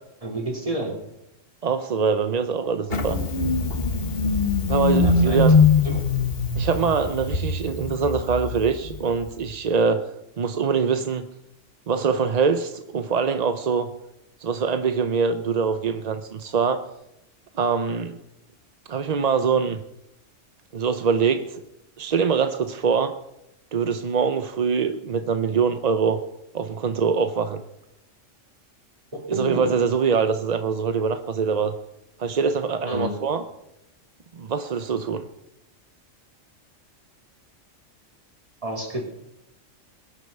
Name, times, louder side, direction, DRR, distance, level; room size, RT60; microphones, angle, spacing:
voice 1, 0.2-0.9 5.0-5.4 5.8-6.0 29.3-29.7 32.9-33.1 38.6-39.1, right 1 dB, 25° right, -1 dB, 2.9 m, -29 dB
voice 2, 1.6-3.2 4.7-5.5 6.5-10.1 10.4-11.2 11.9-13.9 14.4-16.8 17.5-18.2 18.9-19.8 20.7-21.6 22.0-23.1 23.7-26.2 26.5-27.6 29.3-31.7 32.2-33.4 34.3-35.2, right 5 dB, 45° right, 9 dB, 0.5 m, -23 dB
Engine starting, 2.9-9.4, left 4 dB, 50° left, 1.6 m, -22 dB
21.0 x 7.9 x 5.3 m, 0.86 s
omnidirectional pair, 1.3 m